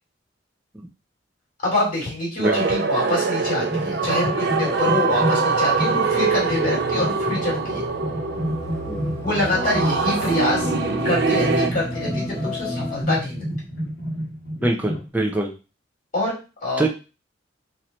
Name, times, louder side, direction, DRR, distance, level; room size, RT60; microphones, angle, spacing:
voice 1, 1.6-7.8 9.2-10.7 11.0-13.5 16.1-16.3 16.6-16.9, left 2 dB, 45° left, -4 dB, 2.7 m, -25 dB
sound 1, 2.4-11.7, right 4 dB, 55° right, 0.6 m, -23 dB
sound 2, 3.4-15.1, equal, 70° left, 1.5 m, -30 dB
sound 3, 4.4-13.0, equal, 15° left, 1.0 m, -34 dB
voice 2, 8.9-9.4 14.6-15.5 16.8-16.9, right 2 dB, 10° right, 1 dB, 0.5 m, -24 dB
4.3 x 2.6 x 4.2 m, 0.32 s
head